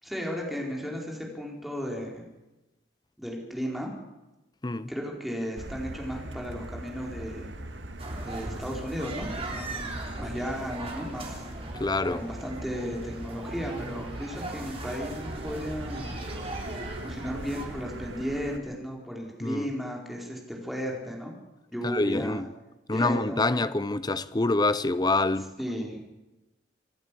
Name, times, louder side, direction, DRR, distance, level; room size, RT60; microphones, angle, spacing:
voice 1, 0.0-2.3 3.2-3.9 4.9-7.5 8.2-11.4 12.0-16.2 17.0-21.3 21.7-22.5 22.9-23.6 25.6-26.0, equal, ahead, 4.6 m, -35 dB
Motor vehicle (road), 5.6-18.6, right 1 dB, 75° right, 1.8 m, -41 dB
sound 1, 8.0-17.7, right 2 dB, 30° right, 3.7 m, -39 dB
voice 2, 11.8-12.2 19.4-19.7 21.8-22.5 22.9-25.5, left 2 dB, 25° left, 0.7 m, -26 dB
26.5 x 12.0 x 8.5 m
head